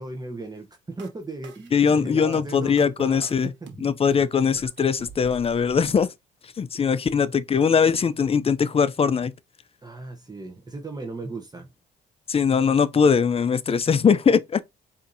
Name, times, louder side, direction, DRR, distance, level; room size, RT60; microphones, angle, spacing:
voice 1, 0.0-3.5 9.8-11.7, right 2 dB, 20° right, 0.8 m, -36 dB
sound 1, 1.0-6.0, right 4 dB, 65° right, 1.1 m, -44 dB
voice 2, 1.7-3.5 3.8-6.1 6.6-9.3 12.3-14.6, left 6 dB, 30° left, 0.5 m, -21 dB
5.0 x 2.7 x 2.6 m
cardioid pair, 90°, 20 cm